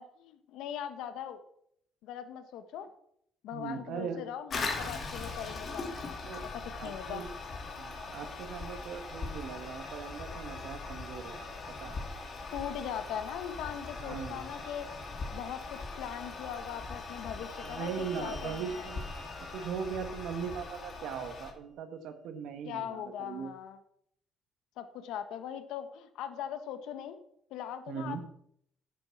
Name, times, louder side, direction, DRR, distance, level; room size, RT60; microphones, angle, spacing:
voice 1, 0.0-1.4 2.0-2.9 3.4-7.2 12.5-14.9 15.3-18.9 22.6-23.8 24.8-27.2 27.5-28.2, left 9 dB, 85° left, 10 dB, 1.3 m, -40 dB
voice 2, 3.5-4.2 4.8-5.0 5.9-6.4 6.8-7.3 7.8-11.6 11.8-12.0 14.0-14.5 17.6-19.0 19.5-23.5 27.9-28.2, right 6 dB, 80° right, 8 dB, 1.7 m, -39 dB
Toilet flush, 4.5-21.5, left 3 dB, 40° left, 2.6 m, -41 dB
sound 1, 16.7-21.2, left 3 dB, 5° left, 3.2 m, -52 dB
11.0 x 7.6 x 6.0 m, 0.71 s
cardioid pair, 120°, 0 cm